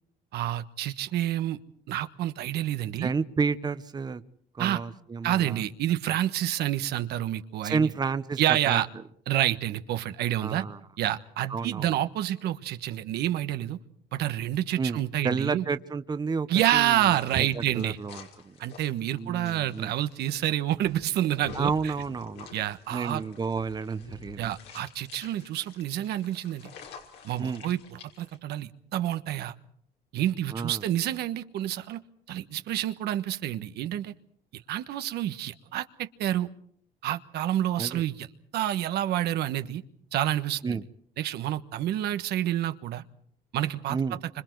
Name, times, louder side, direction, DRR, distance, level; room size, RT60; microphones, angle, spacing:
voice 1, 0.3-1.6 1.9-3.1 4.6-4.8 5.2-7.9 8.4-8.9 9.3-10.7 11.0-13.8 14.1-15.6 16.5-18.0 18.6-21.9 22.5-23.2 24.4-26.7 27.2-27.8 28.2-29.5 30.1-32.0 32.3-34.1 34.5-36.5 37.0-38.3 38.5-39.8 40.1-40.8 41.2-43.0 43.5-44.0, right 12 dB, 75° right, 10 dB, 1.3 m, -28 dB
voice 2, 3.0-4.2 4.5-5.7 7.6-8.4 8.7-8.8 10.4-10.8 11.5-12.0 14.8-18.6 19.2-19.9 21.5-22.5 22.9-24.5 27.4-27.6 30.5-30.8 37.8-38.0 40.6-40.8 43.9-44.2, right 5 dB, 25° right, 11 dB, 1.0 m, -31 dB
sound 1, 16.6-28.4, left 6 dB, 85° left, 5.3 m, -49 dB
29.0 x 26.0 x 4.7 m, 0.62 s
cardioid pair, 110°, 17 cm